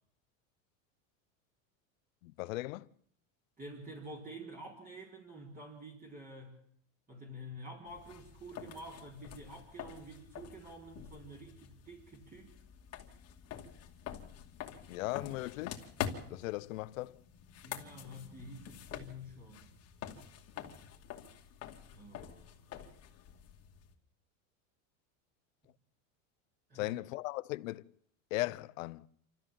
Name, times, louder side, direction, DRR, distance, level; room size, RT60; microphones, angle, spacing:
voice 1, 2.2-2.9 14.9-15.8 16.3-17.2 26.7-27.8 28.3-29.1, left 19 dB, 80° left, 0.8 m, -37 dB
voice 2, 3.6-6.6 7.1-12.5 17.6-19.7 21.9-22.7 26.7-27.0, equal, 20° right, 4.4 m, -49 dB
sound 1, 7.9-23.9, left 9 dB, 40° left, 2.4 m, -47 dB
28.0 x 13.5 x 7.4 m
supercardioid pair, 130°, 39 cm